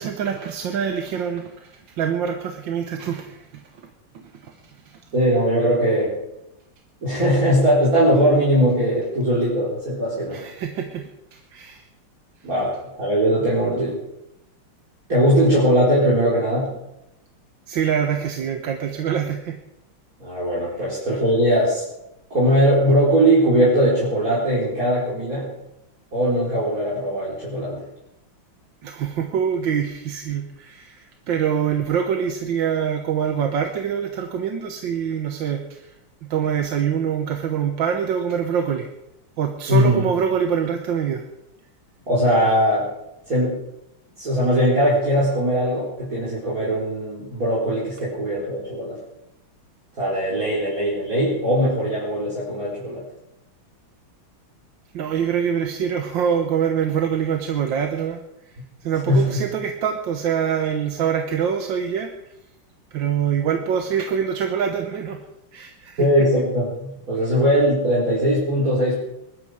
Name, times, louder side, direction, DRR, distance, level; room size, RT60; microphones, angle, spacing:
voice 1, 0.0-3.6 4.4-4.5 4.8-5.0 10.3-11.8 17.7-19.6 28.8-35.9 36.2-38.9 39.4-41.2 54.9-58.2 58.5-58.6 58.8-62.1 62.9-65.2 65.5-66.1, right 8 dB, 65° right, 5 dB, 1.7 m, -25 dB
voice 2, 5.1-6.2 7.0-10.4 12.4-14.0 15.1-16.7 20.2-21.8 22.3-25.5 26.1-27.8 39.7-40.1 42.1-42.9 43.3-43.6 44.2-49.0 50.0-53.0 59.1-59.4 66.0-69.0, equal, 40° right, -8 dB, 4.5 m, -20 dB
20.5 x 13.0 x 4.9 m, 0.88 s
omnidirectional pair, 2.3 m